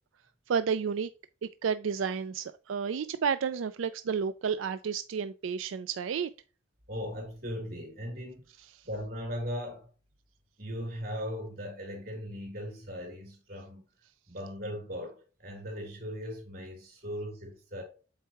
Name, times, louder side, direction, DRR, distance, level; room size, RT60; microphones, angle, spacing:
voice 1, 0.5-1.1 1.4-6.3, right 6 dB, 90° right, 0.4 m, -31 dB
voice 2, 6.9-8.4 8.8-9.9 10.6-13.8 14.3-17.8, equal, 50° right, 3.3 m, -38 dB
7.9 x 4.6 x 3.0 m
head